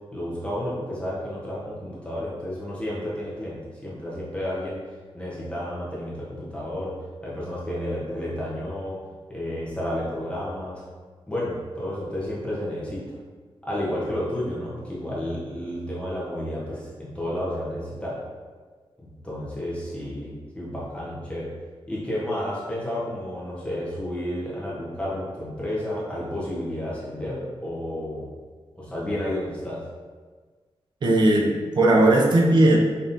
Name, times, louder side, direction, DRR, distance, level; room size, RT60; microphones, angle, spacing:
voice 1, 0.1-4.8 5.1-9.0 9.3-10.8 11.3-13.1 13.6-18.2 19.0-21.5 21.9-28.3 28.8-29.8, left 1 dB, 10° left, -8 dB, 0.8 m, -31 dB
voice 2, 31.0-32.8, right 1 dB, 50° right, -2 dB, 0.6 m, -18 dB
5.2 x 2.8 x 2.6 m, 1.5 s
wide cardioid pair, 180°, 10 cm